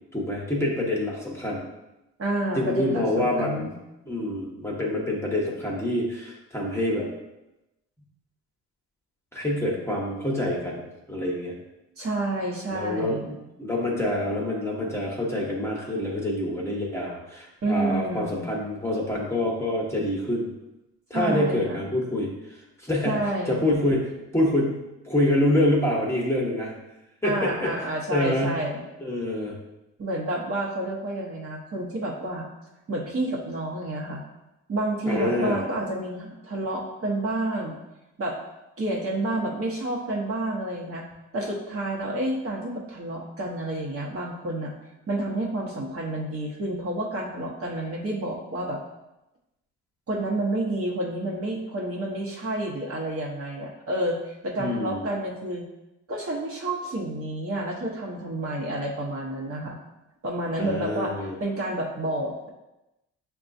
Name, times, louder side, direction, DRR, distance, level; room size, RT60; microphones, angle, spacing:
voice 1, 0.1-1.7 2.5-3.7 4.1-7.1 9.3-11.6 12.7-20.5 21.1-24.8 25.0-26.7 27.2-27.7 28.1-28.6 29.0-29.6 35.1-35.7 54.6-55.1 60.6-61.4, left 1 dB, 10° left, -3 dB, 0.9 m, -26 dB
voice 2, 2.2-3.8 12.0-13.3 17.6-18.4 21.1-21.9 23.0-23.6 27.2-28.8 30.0-32.5 32.9-34.2 34.7-37.8 38.2-38.4 38.8-41.0 41.3-44.7 45.1-48.8 50.1-55.6 56.1-59.8 60.2-62.5, right 1 dB, 50° right, -2 dB, 1.0 m, -29 dB
6.6 x 2.3 x 2.6 m, 0.96 s
cardioid pair, 90°, 30 cm